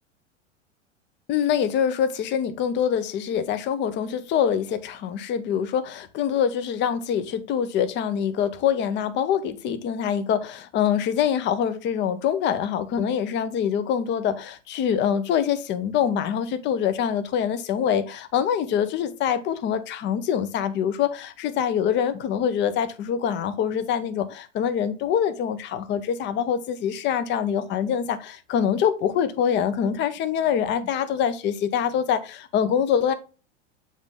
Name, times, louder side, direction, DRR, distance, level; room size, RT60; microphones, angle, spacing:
voice 1, 1.3-33.1, left 8 dB, 30° left, 0.8 m, -25 dB
7.3 x 4.0 x 3.6 m
figure-of-eight pair, 95°, 36 cm